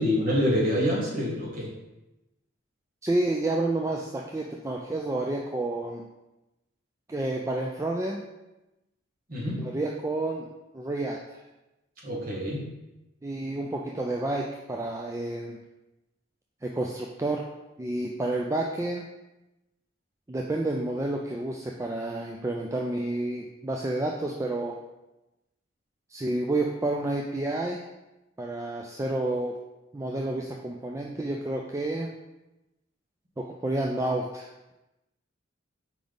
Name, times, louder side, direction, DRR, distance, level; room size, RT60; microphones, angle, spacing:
voice 1, 0.0-1.7 9.3-9.6 12.0-12.7, left 1 dB, 40° right, -3 dB, 1.5 m, -26 dB
voice 2, 3.0-6.0 7.1-8.2 9.5-10.5 10.7-11.4 13.2-15.6 16.6-17.4 17.8-19.0 20.3-24.8 26.1-27.8 28.4-29.6 29.9-32.1 33.4-34.7, right 2 dB, 15° right, 0 dB, 0.3 m, -30 dB
5.2 x 4.9 x 3.8 m, 0.98 s
head